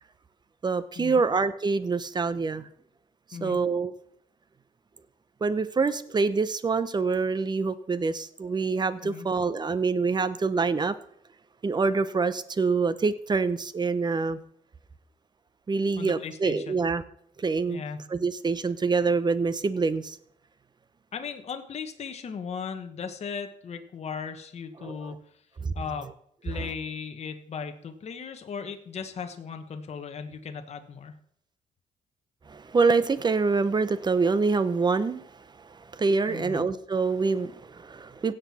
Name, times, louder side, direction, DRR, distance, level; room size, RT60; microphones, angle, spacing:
voice 1, 0.6-2.7 3.4-3.9 5.4-11.0 11.6-14.4 15.7-17.0 17.4-17.8 18.1-20.2 24.8-25.1 25.6-25.7 32.5-38.3, right 4 dB, 30° right, 14 dB, 0.9 m, -26 dB
voice 2, 16.0-16.8 17.7-18.1 21.1-25.4 25.7-26.1 26.4-31.2 36.3-36.7, left 6 dB, 45° left, 6 dB, 1.2 m, -37 dB
16.5 x 7.8 x 4.3 m, 0.69 s
cardioid pair, 90°, 15 cm